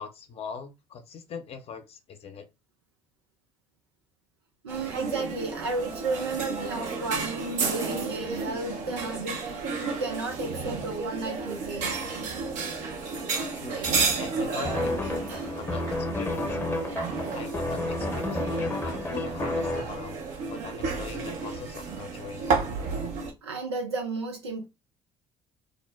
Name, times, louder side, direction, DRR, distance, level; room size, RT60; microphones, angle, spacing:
voice 1, 0.0-2.5 13.5-13.8 14.2-15.0 15.5-16.8 17.3-20.2 20.5-22.6, left 6 dB, 45° left, 0.6 m, -41 dB
voice 2, 4.6-11.9 23.4-24.7, right 3 dB, 90° right, 0.5 m, -33 dB
sound 1, 4.7-23.3, right 4 dB, 65° right, 0.8 m, -32 dB
sound 2, 14.6-19.8, left 2 dB, 20° left, 0.8 m, -31 dB
2.5 x 2.0 x 3.3 m
hypercardioid pair, 55°, 14 cm